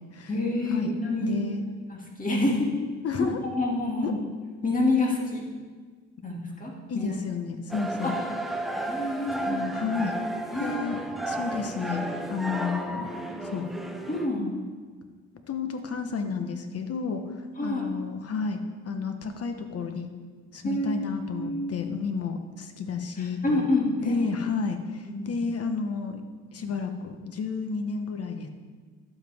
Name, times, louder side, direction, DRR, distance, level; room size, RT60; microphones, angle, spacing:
voice 1, 0.3-1.4 1.9-2.5 3.2-4.1 4.6-5.4 6.2-7.1 8.0-8.2 8.8-9.6 10.5-10.8 13.1-13.2 13.5-13.7 14.1-14.6 17.6-17.8 20.6-21.7 23.2-24.3 25.0-25.3, left 2 dB, 25° left, -2 dB, 2.4 m, -28 dB
voice 2, 1.2-1.6 2.4-2.6 3.0-3.4 4.0-4.2 6.9-8.1 9.5-10.1 10.6-12.0 12.3-13.2 13.4-13.7 15.5-18.6 18.8-20.1 20.5-23.7 24.0-26.2 26.5-28.5, left 5 dB, 50° left, 6 dB, 1.1 m, -31 dB
sound 1, 7.7-14.3, right 1 dB, ahead, 0.8 m, -33 dB
11.5 x 7.7 x 3.6 m, 1.5 s
cardioid pair, 90°, 30 cm